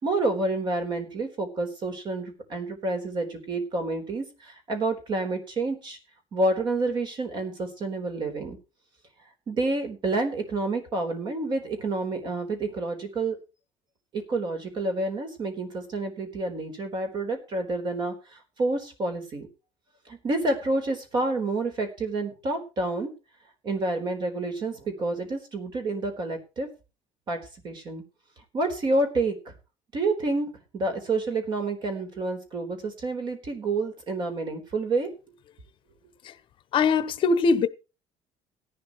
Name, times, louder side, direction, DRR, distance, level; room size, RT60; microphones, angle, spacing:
voice 1, 0.0-6.0 6.3-8.6 9.5-13.4 14.1-19.5 20.1-23.1 23.6-26.7 27.3-27.4 27.6-28.0 28.5-29.5 29.9-30.5 30.7-35.1, right 2 dB, 40° right, 4.0 m, -29 dB
voice 2, 36.7-37.7, left 4 dB, 45° left, 1.0 m, -22 dB
17.0 x 11.5 x 3.1 m
cardioid pair, 160°, 12 cm